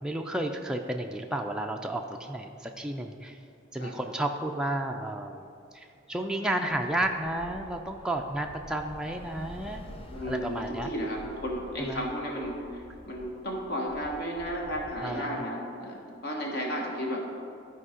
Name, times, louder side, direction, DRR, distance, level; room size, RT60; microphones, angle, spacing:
voice 1, 0.0-3.4 3.7-5.4 5.7-9.9 10.2-10.9 11.8-12.0 15.0-15.4, right 1 dB, 5° right, 2 dB, 0.3 m, -32 dB
Bus / Traffic noise roadway noise, 6.2-14.9, equal, 30° left, 0.6 m, -48 dB
voice 2, 10.1-17.3, equal, 60° left, -1 dB, 1.2 m, -33 dB
12.5 x 4.6 x 4.9 m, 2.5 s
head